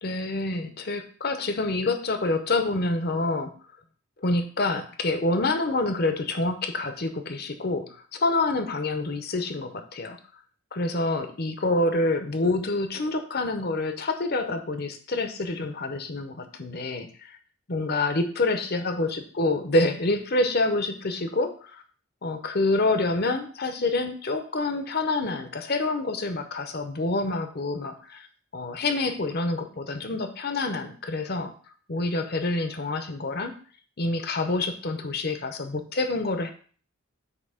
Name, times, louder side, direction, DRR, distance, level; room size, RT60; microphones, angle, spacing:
voice 1, 0.0-3.5 4.2-10.2 10.7-17.4 17.7-21.8 22.2-28.3 28.5-31.5 31.9-33.6 34.0-36.5, left 2 dB, 45° left, 8 dB, 0.8 m, -27 dB
8.1 x 2.9 x 5.6 m, 0.43 s
head